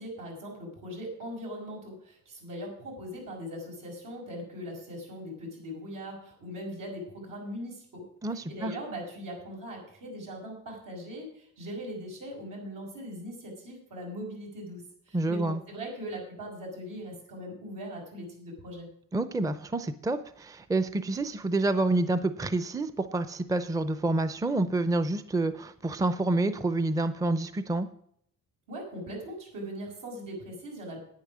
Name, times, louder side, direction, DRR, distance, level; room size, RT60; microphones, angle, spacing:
voice 1, 0.0-8.1 8.3-18.9 28.7-31.0, equal, 85° right, -1 dB, 5.7 m, -40 dB
voice 2, 8.2-8.7 15.1-15.6 19.1-27.9, right 2 dB, 10° right, 12 dB, 0.5 m, -28 dB
10.5 x 9.3 x 6.2 m, 0.68 s
wide cardioid pair, 145°, 32 cm